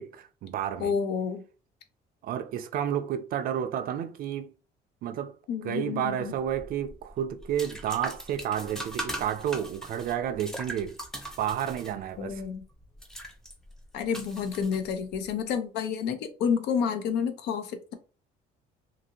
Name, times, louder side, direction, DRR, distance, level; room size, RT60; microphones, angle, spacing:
voice 1, 0.0-0.9 2.2-4.5 5.0-5.4 5.6-11.0 11.4-12.4, right 10 dB, 60° right, 0.4 m, -31 dB
voice 2, 0.8-1.4 5.5-6.3 12.2-12.6 13.9-17.9, left 6 dB, 90° left, 0.6 m, -29 dB
sound 1, 6.4-15.3, right 1 dB, 5° left, 0.6 m, -41 dB
2.7 x 2.6 x 2.8 m
cardioid pair, 110°, 17 cm